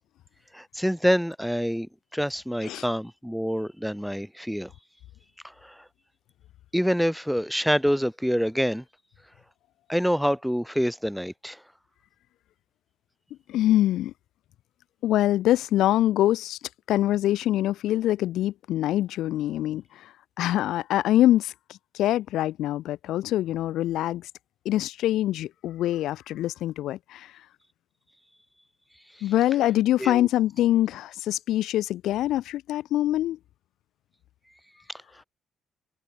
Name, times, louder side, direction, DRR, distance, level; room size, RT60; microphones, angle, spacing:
voice 1, 0.5-4.7 5.4-5.8 6.7-8.8 9.9-11.6 30.0-30.3, equal, ahead, 1.8 m, -26 dB
voice 2, 13.5-14.1 15.0-16.6 16.9-24.3 24.6-27.3 29.2-33.4, left 14 dB, 85° left, 0.6 m, -24 dB
cardioid pair, 90°, 0 cm